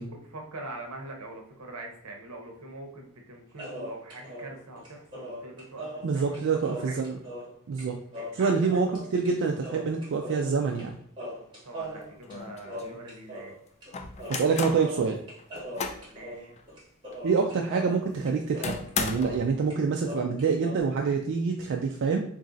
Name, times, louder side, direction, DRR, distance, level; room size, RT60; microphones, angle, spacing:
voice 1, 0.0-7.3 8.1-8.9 11.6-13.6 16.1-16.5, right 2 dB, 80° right, 2 dB, 0.9 m, -43 dB
sound 1, 3.6-7.5 7.8-7.9 8.1-9.3 9.6-10.9 11.2-13.5 13.8-13.9 14.2-19.5 19.7-20.8, equal, 20° right, 1.4 m, -40 dB
voice 2, 6.0-7.2 7.7-8.0 8.3-8.9 9.1-11.0 14.3-15.2 17.2-22.2, right 5 dB, 55° right, 2 dB, 0.4 m, -26 dB
sound 2, 11.8-11.9 12.3-13.0 13.9-14.9 15.4-16.1 16.6-16.7 17.1-17.2 18.6-19.5, left 5 dB, 30° left, 0.3 m, -34 dB
3.0 x 2.6 x 3.8 m, 0.64 s
head